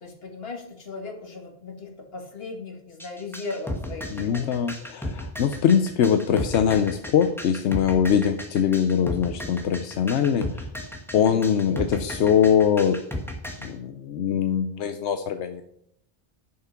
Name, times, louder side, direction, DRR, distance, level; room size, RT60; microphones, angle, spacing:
voice 1, 0.0-4.5 11.2-11.5, left 3 dB, 60° left, 2 dB, 2.1 m, -38 dB
sound 1, 3.0-13.7, left 1 dB, ahead, 1.4 m, -34 dB
voice 2, 4.1-10.7 11.1-13.0 13.6-15.6, left 8 dB, 85° left, 8 dB, 0.9 m, -22 dB
11.0 x 5.9 x 5.8 m, 0.75 s
omnidirectional pair, 1.1 m